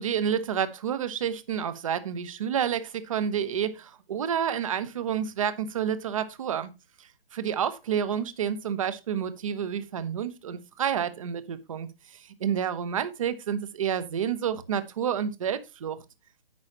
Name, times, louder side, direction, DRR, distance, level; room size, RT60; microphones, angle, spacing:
voice 1, 0.0-6.7 7.0-16.0, right 8 dB, 35° right, 1.0 m, -29 dB
10.5 x 8.6 x 3.0 m
figure-of-eight pair, 150°, 30 cm